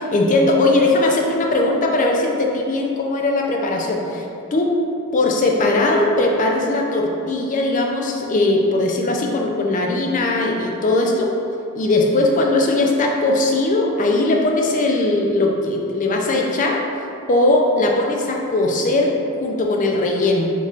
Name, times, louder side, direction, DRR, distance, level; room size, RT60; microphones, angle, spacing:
voice 1, 0.0-4.2 4.5-4.7 5.1-11.3 11.7-16.8 17.3-19.1 19.4-20.5, left 2 dB, 35° left, 0 dB, 0.4 m, -19 dB
5.2 x 3.0 x 2.7 m, 2.6 s
head